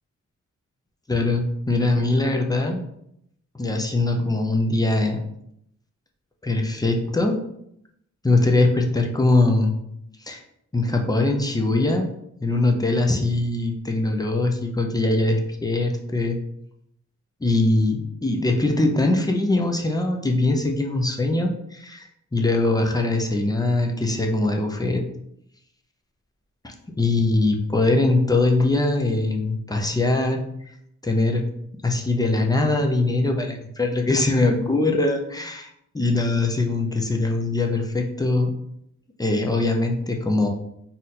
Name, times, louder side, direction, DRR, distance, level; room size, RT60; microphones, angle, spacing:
voice 1, 1.1-2.8 3.5-5.2 6.4-7.4 8.2-9.8 10.2-10.4 10.7-12.1 12.4-16.4 17.4-25.0 26.6-30.4 31.0-31.4 31.8-38.5 39.2-40.5, left 2 dB, 15° left, 2 dB, 0.6 m, -22 dB
4.1 x 2.5 x 4.1 m, 0.77 s
wide cardioid pair, 100°, 29 cm